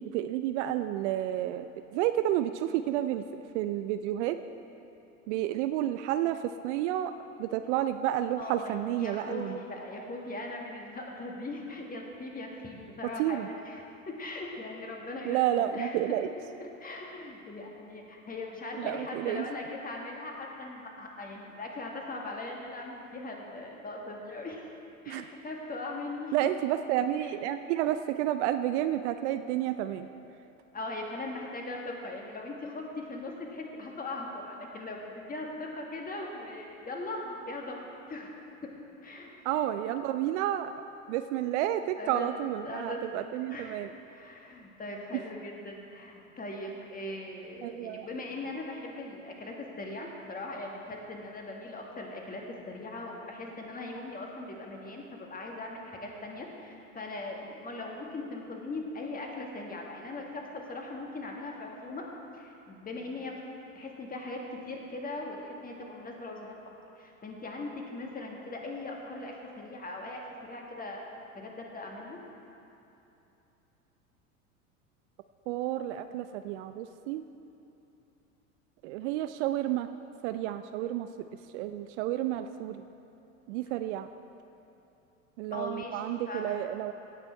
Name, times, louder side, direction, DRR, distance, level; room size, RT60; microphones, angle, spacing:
voice 1, 0.0-3.2 3.5-4.4 5.3-7.1 7.4-9.6 13.2-13.5 15.2-16.3 18.8-19.5 25.1-25.3 26.3-30.1 39.4-40.7 41.1-43.9 45.1-45.2 47.6-48.1 75.5-77.2 78.8-79.9 80.2-81.1 81.5-82.8 83.5-84.1 85.4-86.9, right 12 dB, 55° right, 10 dB, 0.5 m, -30 dB
voice 2, 8.4-15.4 15.7-16.2 16.6-24.7 25.0-26.3 27.2-27.3 30.7-38.3 39.0-39.3 42.0-42.3 42.6-43.2 43.5-43.7 44.1-62.1 62.3-63.4 63.7-66.6 67.0-72.2 85.5-86.6, left 2 dB, 20° left, 0 dB, 1.8 m, -40 dB
17.0 x 6.1 x 4.5 m, 2.9 s
hypercardioid pair, 80°, 42 cm